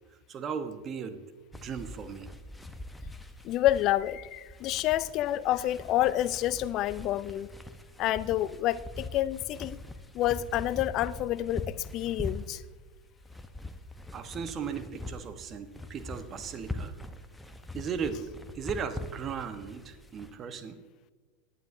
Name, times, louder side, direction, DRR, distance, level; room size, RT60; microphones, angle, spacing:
voice 1, 0.3-1.2 1.5-2.3 14.1-16.9 17.7-18.2 18.5-20.8, right 6 dB, 30° right, 10 dB, 1.1 m, -37 dB
sound 1, 1.5-20.3, left 1 dB, 5° left, 0.9 m, -43 dB
voice 2, 3.4-7.5 8.0-9.8 10.1-12.6, left 14 dB, 40° left, 17 dB, 0.5 m, -28 dB
18.5 x 11.0 x 2.7 m, 1.4 s
figure-of-eight pair, 85°, 0 cm